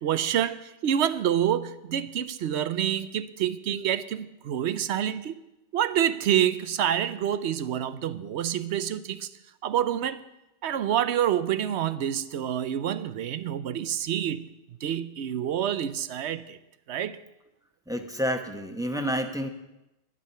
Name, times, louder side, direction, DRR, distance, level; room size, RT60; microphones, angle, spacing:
voice 1, 0.0-5.3 5.7-9.3 9.6-10.2 10.6-14.5 14.8-16.6 16.9-17.2, right 10 dB, 85° right, 0.9 m, -27 dB
voice 2, 17.9-19.5, equal, 5° right, 1.0 m, -29 dB
12.0 x 11.0 x 5.6 m
omnidirectional pair, 1.1 m